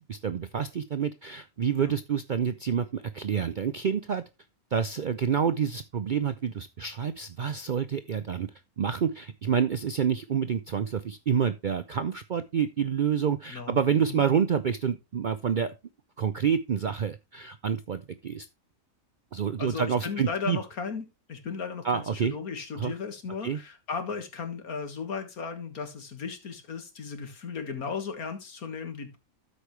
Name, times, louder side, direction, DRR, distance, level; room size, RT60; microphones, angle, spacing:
voice 1, 0.0-4.2 4.7-8.5 8.8-15.7 16.2-18.5 19.3-20.6 21.8-22.4 22.8-22.9 23.4-23.6, right 7 dB, 65° right, 11 dB, 0.4 m, -28 dB
voice 2, 13.5-14.2 19.6-29.2, left 5 dB, 90° left, 7 dB, 2.2 m, -36 dB
13.0 x 5.3 x 3.2 m, 0.26 s
omnidirectional pair, 1.5 m